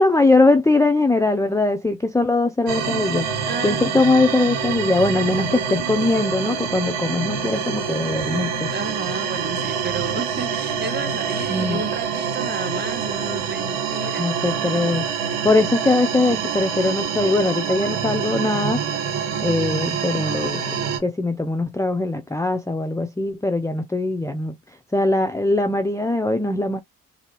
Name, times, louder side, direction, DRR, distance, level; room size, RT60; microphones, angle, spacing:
voice 1, 0.0-8.7 11.5-11.8 14.2-18.8 19.4-24.5 24.9-26.8, left 2 dB, 10° left, 0.6 m, -21 dB
sound 1, 2.7-21.0, right 6 dB, 90° right, 1.4 m, -26 dB
voice 2, 3.5-3.9 8.7-14.4, right 4 dB, 25° right, 1.3 m, -31 dB
3.4 x 2.7 x 2.9 m
supercardioid pair, 50°, 41 cm